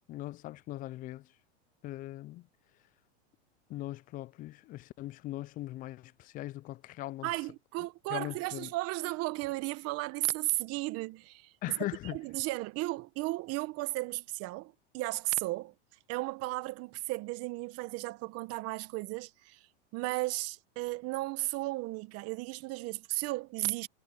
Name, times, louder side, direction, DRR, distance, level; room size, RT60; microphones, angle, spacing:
voice 1, 0.1-1.3 1.8-2.5 3.7-7.3 8.1-8.7 11.6-12.2, left 16 dB, 25° left, 0.4 m, -40 dB
voice 2, 7.2-11.5 12.1-15.7 16.1-19.6 19.9-23.9, right 20 dB, 45° right, 1.5 m, -35 dB
hypercardioid pair, 120°, 34 cm